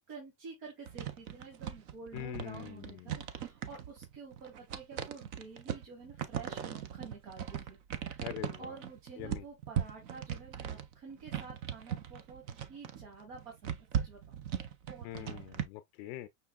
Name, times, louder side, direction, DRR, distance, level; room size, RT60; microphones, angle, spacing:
voice 1, 0.1-8.2 8.6-14.4 14.9-15.6, right 4 dB, 60° right, 2.0 m, -50 dB
sound 1, 0.9-15.6, right 9 dB, 35° right, 0.4 m, -39 dB
voice 2, 2.1-3.2 8.2-8.7 9.2-9.4 15.0-16.3, left 14 dB, 50° left, 0.5 m, -43 dB
5.7 x 3.5 x 2.3 m
supercardioid pair, 155°, 43 cm